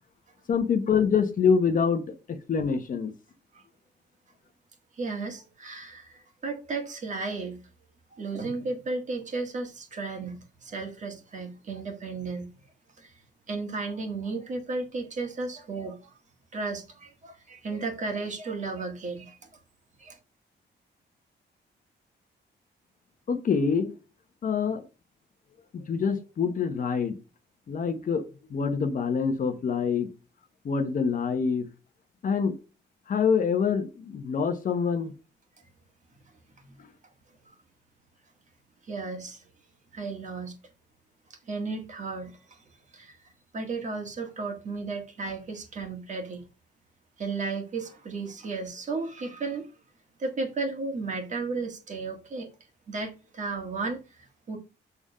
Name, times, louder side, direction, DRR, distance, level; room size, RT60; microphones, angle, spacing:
voice 1, 0.5-2.0 2.3-3.1 23.3-23.9 24.4-24.8 25.7-27.1 27.7-28.2 28.5-30.1 30.6-31.7 32.2-32.5 33.1-35.1, left 6 dB, 45° left, 1.0 m, -25 dB
voice 2, 5.0-7.6 8.1-12.5 13.0-13.1 13.5-16.1 16.5-19.4 20.0-20.2 36.6-36.8 38.9-39.4 39.9-40.5 41.5-42.6 42.9-43.2 43.5-46.4 47.2-49.7 50.2-52.5 52.9-54.6, right 3 dB, 40° right, 1.6 m, -34 dB
7.0 x 3.7 x 5.5 m
wide cardioid pair, 150°, 19 cm